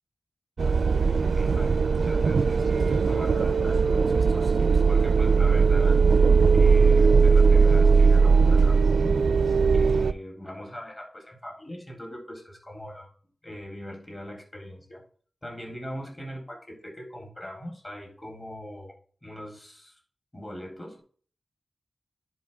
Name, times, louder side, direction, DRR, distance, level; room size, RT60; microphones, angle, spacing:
sound 1, 0.6-10.1, right 5 dB, 85° right, 0.4 m, -19 dB
voice 1, 1.0-6.0 6.5-9.2 9.7-13.1 13.4-15.0 15.4-19.0 19.2-20.0 20.3-21.0, equal, 30° left, -1 dB, 3.8 m, -41 dB
10.5 x 4.4 x 3.7 m, 0.43 s
wide cardioid pair, 65°, 0 cm